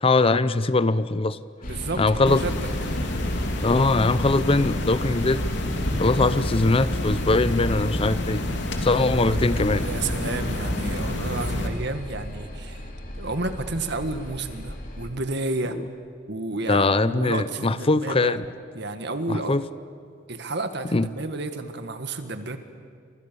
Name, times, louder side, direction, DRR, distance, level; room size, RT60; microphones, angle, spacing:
voice 1, 0.0-1.4 2.0-2.4 3.6-5.4 6.0-8.4 8.8-9.9 15.7-15.8 16.7-18.4 19.3-19.6 20.9-21.1, left 3 dB, 30° left, 15 dB, 0.6 m, -21 dB
sound 1, 1.6-15.1, equal, 45° left, 3.3 m, -35 dB
voice 2, 1.6-2.7 8.9-12.9 13.1-15.8 16.3-18.4 18.7-19.6 20.3-22.6, right 2 dB, 60° right, 8 dB, 1.9 m, -31 dB
sound 2, 2.3-11.7, left 1 dB, 65° left, 2.9 m, -28 dB
30.0 x 26.0 x 7.0 m, 2.3 s
head